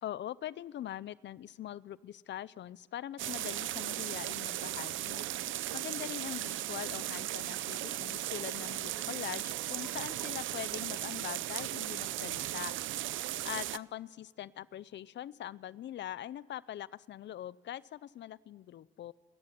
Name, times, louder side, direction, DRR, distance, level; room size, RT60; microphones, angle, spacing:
voice 1, 0.0-5.2 5.7-12.7 13.4-19.1, left 12 dB, 65° left, 20 dB, 0.7 m, -42 dB
sound 1, 3.2-13.8, right 14 dB, 80° right, 0.6 m, -37 dB
sound 2, 7.6-13.6, left 1 dB, 5° left, 5.8 m, -59 dB
28.0 x 14.5 x 10.0 m, 1.4 s
cardioid pair, 90°, 20 cm